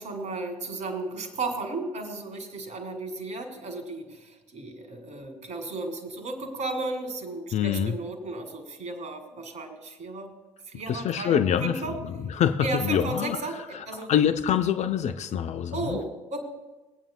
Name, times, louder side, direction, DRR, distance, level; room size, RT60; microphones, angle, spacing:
voice 1, 0.0-10.3 10.7-11.9 12.6-13.5 13.9-14.1 15.7-16.4, right 2 dB, 45° right, 5 dB, 2.2 m, -34 dB
voice 2, 7.5-8.0 10.9-16.0, left 9 dB, 45° left, 10 dB, 0.6 m, -26 dB
21.5 x 8.8 x 2.2 m, 1.1 s
figure-of-eight pair, 55°, 17 cm